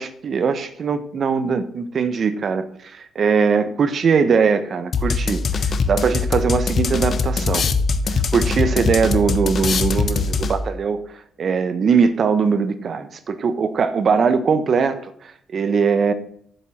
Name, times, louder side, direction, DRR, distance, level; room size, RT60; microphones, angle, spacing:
voice 1, 0.0-7.7 8.1-11.0 11.4-16.1, right 5 dB, 50° right, 1.1 m, -21 dB
sound 1, 4.9-10.8, left 4 dB, 50° left, 1.0 m, -22 dB
7.7 x 7.5 x 7.8 m
cardioid pair, 90°, 0 cm